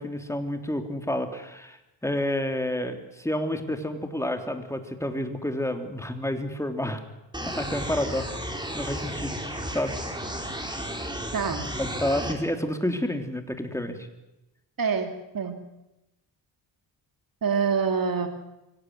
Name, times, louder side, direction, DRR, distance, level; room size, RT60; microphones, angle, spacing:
voice 1, 0.0-1.8 2.0-7.0 7.4-8.3 8.7-9.4 9.7-9.9 11.8-14.0, left 1 dB, 5° left, 5 dB, 3.3 m, -29 dB
sound 1, 7.3-12.3, right 1 dB, 10° right, 4.6 m, -33 dB
voice 2, 11.3-11.7 14.8-15.6 17.4-18.3, right 6 dB, 45° right, 6 dB, 2.6 m, -26 dB
24.0 x 17.5 x 9.6 m, 0.94 s
cardioid pair, 85°, 45 cm